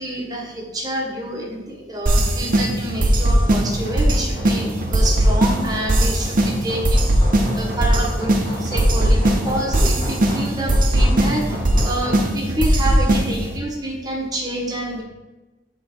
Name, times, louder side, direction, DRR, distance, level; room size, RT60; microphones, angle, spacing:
voice 1, 0.0-7.0 7.5-11.5 11.8-15.0, right 1 dB, 20° right, -1 dB, 1.4 m, -28 dB
sound 1, 2.1-13.6, right 1 dB, 50° right, 0.8 m, -19 dB
Hammer, 2.9-12.3, left 1 dB, 30° left, 2.1 m, -34 dB
7.5 x 3.9 x 4.5 m, 1.1 s
head